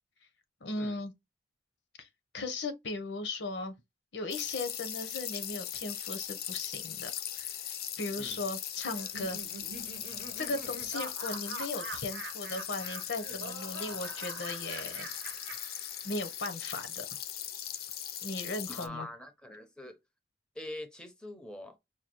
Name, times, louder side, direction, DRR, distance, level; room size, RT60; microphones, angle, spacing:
voice 1, 0.6-1.1 2.0-2.1 2.3-3.8 4.1-9.4 10.4-15.1 16.0-17.1 18.2-19.1, left 2 dB, 85° left, 0.8 m, -37 dB
sound 1, 4.3-18.9, left 10 dB, 55° left, 0.5 m, -39 dB
Laughter, 8.9-16.4, right 4 dB, 90° right, 0.8 m, -45 dB
voice 2, 18.7-20.0 20.6-21.8, left 1 dB, 5° left, 0.5 m, -44 dB
5.0 x 2.3 x 2.9 m
head